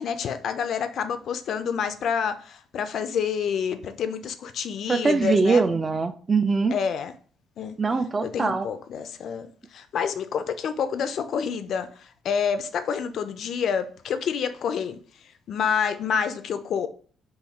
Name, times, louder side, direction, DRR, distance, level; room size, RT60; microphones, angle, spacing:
voice 1, 0.0-5.6 6.7-7.1 7.6-7.8 8.2-15.0 15.5-16.9, left 7 dB, 55° left, 0.3 m, -28 dB
voice 2, 4.9-6.8 7.8-8.7, right 4 dB, 30° right, 0.3 m, -22 dB
2.8 x 2.4 x 4.1 m
figure-of-eight pair, 45°, 0 cm